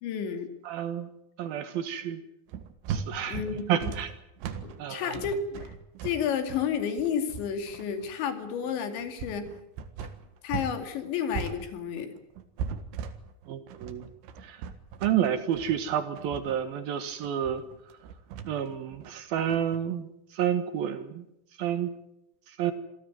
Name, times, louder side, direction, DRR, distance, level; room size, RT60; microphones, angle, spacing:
voice 1, 0.0-0.5 3.3-4.0 4.6-5.7 6.0-9.5 10.4-12.1, left 7 dB, 85° left, 8 dB, 4.7 m, -31 dB
voice 2, 0.7-1.1 1.4-2.2 2.9-3.4 3.7-4.1 4.8-5.1 13.5-14.1 14.4-14.6 15.0-17.6 18.5-20.1 20.4-21.2 21.6-21.9 22.6-22.7, right 9 dB, 65° right, 10 dB, 3.0 m, -29 dB
sound 1, 2.5-10.8 11.0-19.8, right 7 dB, 90° right, 3.9 m, -38 dB
27.0 x 16.5 x 9.4 m, 0.81 s
omnidirectional pair, 5.1 m